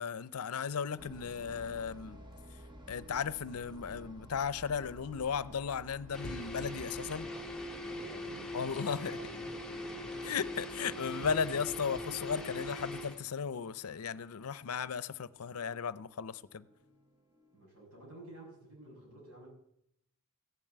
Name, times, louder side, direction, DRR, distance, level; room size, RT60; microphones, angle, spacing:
voice 1, 0.0-2.2 2.9-7.3 8.5-9.2 10.2-16.6, left 6 dB, 80° left, 0.6 m, -36 dB
sound 1, 1.0-17.7, equal, 20° right, 1.1 m, -55 dB
sound 2, 6.1-13.2, left 1 dB, 5° left, 1.1 m, -41 dB
voice 2, 7.8-10.3 17.5-19.5, right 1 dB, 85° right, 6.6 m, -52 dB
15.0 x 7.4 x 8.1 m
head